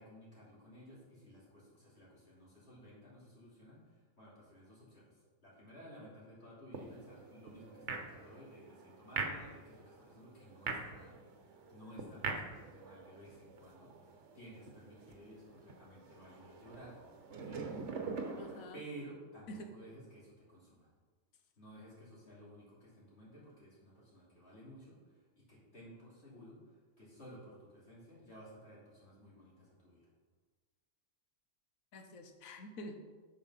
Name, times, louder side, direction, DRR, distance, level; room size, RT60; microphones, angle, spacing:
voice 1, 0.0-3.8 4.2-5.1 5.4-11.2 11.7-17.0 17.3-17.7 18.7-20.9 21.6-25.0 25.4-26.6 27.0-30.1, equal, 50° left, -7 dB, 3.2 m, -55 dB
sound 1, 6.7-18.6, right 4 dB, 60° right, 1.3 m, -44 dB
voice 2, 18.4-18.8 19.5-19.7 31.9-33.0, left 1 dB, 75° left, 6 dB, 1.4 m, -47 dB
8.7 x 5.6 x 5.7 m, 1.4 s
omnidirectional pair, 1.4 m